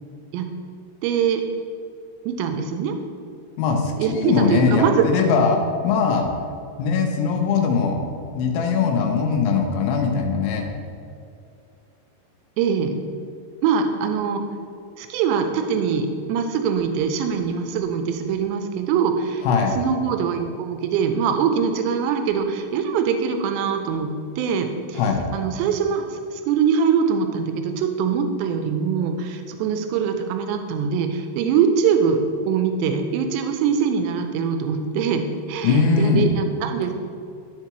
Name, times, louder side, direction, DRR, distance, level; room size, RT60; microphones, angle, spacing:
voice 1, 1.0-1.4 2.3-3.0 4.0-5.1 12.6-12.9 13.6-14.4 15.0-19.4 19.8-25.0 25.3-36.9, right 6 dB, 80° right, 6 dB, 2.7 m, -23 dB
voice 2, 3.6-5.6 5.8-6.3 6.8-8.0 8.3-10.6 19.4-19.8 25.0-25.2 35.6-36.3, left 5 dB, 80° left, 2 dB, 3.2 m, -20 dB
13.5 x 4.5 x 3.0 m, 2.4 s
omnidirectional pair, 5.5 m